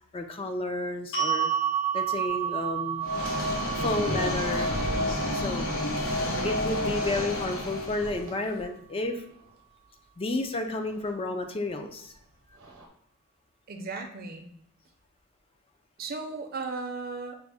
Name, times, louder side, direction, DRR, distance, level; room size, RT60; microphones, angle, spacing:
voice 1, 0.1-1.5 1.9-3.1 3.8-4.7 5.3-5.7 6.4-9.2 10.2-12.1, left 2 dB, 25° left, 5 dB, 0.4 m, -31 dB
sound 1, 1.1-7.3, right 9 dB, 60° left, 1.2 m, -32 dB
sound 2, 2.1-5.2 6.6-6.7 7.7-9.6 10.7-11.1 12.1-12.2 12.5-12.9, right 1 dB, 70° right, 0.8 m, -41 dB
sound 3, 3.0-8.2, left 1 dB, 80° left, 1.0 m, -30 dB
voice 2, 13.7-14.5 16.0-17.4, right 3 dB, 45° right, 5 dB, 0.5 m, -36 dB
6.1 x 2.1 x 3.4 m, 0.73 s
head